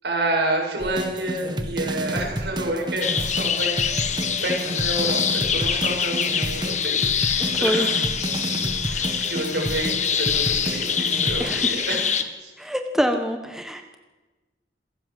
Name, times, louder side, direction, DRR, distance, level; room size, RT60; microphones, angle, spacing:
voice 1, 0.0-3.8 4.4-8.0 8.8-12.5, right 1 dB, 75° right, 0 dB, 7.7 m, -29 dB
sound 1, 0.8-11.5, right 1 dB, 25° right, 1.7 m, -30 dB
sound 2, 3.0-12.2, left 7 dB, 40° left, 1.5 m, -25 dB
voice 2, 11.4-11.7 12.6-13.8, equal, 5° right, 5 dB, 1.4 m, -25 dB
27.0 x 17.5 x 8.0 m, 1.2 s
head